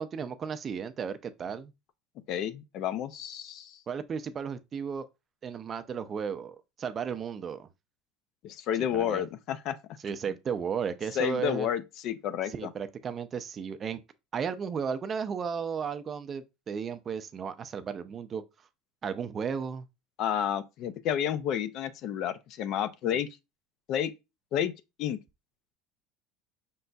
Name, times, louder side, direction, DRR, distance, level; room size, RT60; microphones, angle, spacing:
voice 1, 0.0-1.7 3.9-5.1 5.4-7.7 8.9-9.3 10.0-11.7 12.4-14.0 14.3-18.4 19.0-19.9, right 6 dB, 30° right, 0.4 m, -34 dB
voice 2, 2.3-3.8 8.4-9.8 11.2-12.7 20.2-23.3 23.9-24.1 24.5-24.7 25.0-25.2, left 9 dB, 50° left, 0.5 m, -30 dB
5.3 x 3.9 x 2.3 m
supercardioid pair, 135°, 0 cm